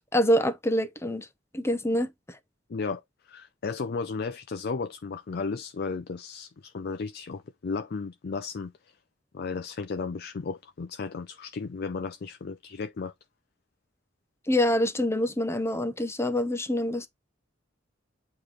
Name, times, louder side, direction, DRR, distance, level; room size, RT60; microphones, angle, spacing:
voice 1, 0.1-1.3 1.5-2.1 14.5-17.1, left 1 dB, 15° left, 0.9 m, -25 dB
voice 2, 2.7-3.0 3.3-8.7 9.3-13.1, left 4 dB, 55° left, 0.5 m, -34 dB
8.6 x 3.2 x 3.9 m
head